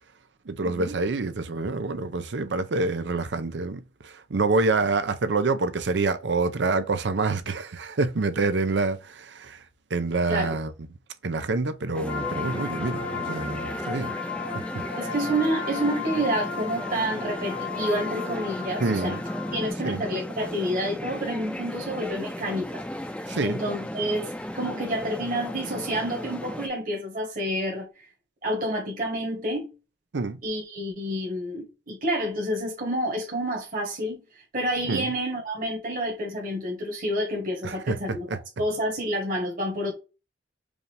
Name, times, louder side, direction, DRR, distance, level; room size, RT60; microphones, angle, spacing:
voice 1, 0.5-9.6 9.9-10.7 11.2-14.5 14.7-14.9 18.8-19.2 19.8-20.0 23.3-23.6 30.1-30.4 34.9-35.1 37.6-38.0 38.3-38.4, right 3 dB, 80° right, 0.6 m, -27 dB
sound 1, 11.9-26.7, left 1 dB, 5° left, 0.5 m, -35 dB
sound 2, 12.1-19.7, left 5 dB, 90° left, 1.2 m, -35 dB
voice 2, 15.0-19.2 19.5-23.1 23.4-24.3 24.5-27.9 28.4-29.7 30.4-34.2 34.5-38.3 38.6-39.9, right 1 dB, 50° right, 1.4 m, -29 dB
4.9 x 2.6 x 3.3 m
head